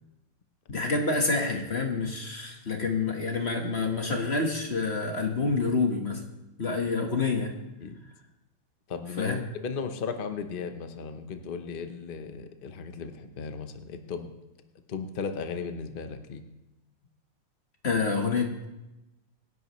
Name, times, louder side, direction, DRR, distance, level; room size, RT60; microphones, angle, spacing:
voice 1, 0.7-6.2 6.6-7.6 9.2-9.4 17.8-18.6, left 4 dB, 35° left, 2 dB, 1.4 m, -28 dB
voice 2, 8.9-14.3 14.9-16.4, left 5 dB, 80° left, 7 dB, 0.4 m, -36 dB
25.5 x 10.5 x 3.1 m, 0.99 s
omnidirectional pair, 2.4 m